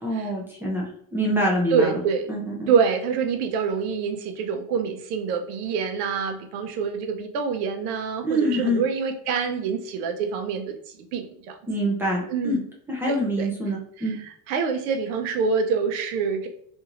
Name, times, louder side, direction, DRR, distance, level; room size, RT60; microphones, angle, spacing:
voice 1, 0.0-1.9 2.3-2.7 8.2-8.8 11.7-12.6 12.9-14.1, equal, 5° right, -3 dB, 0.3 m, -25 dB
voice 2, 1.7-2.3 2.7-11.6 12.3-12.6 13.1-13.5 14.0-16.5, right 6 dB, 70° right, 6 dB, 0.7 m, -26 dB
2.9 x 2.6 x 2.4 m, 0.65 s
supercardioid pair, 135°, 46 cm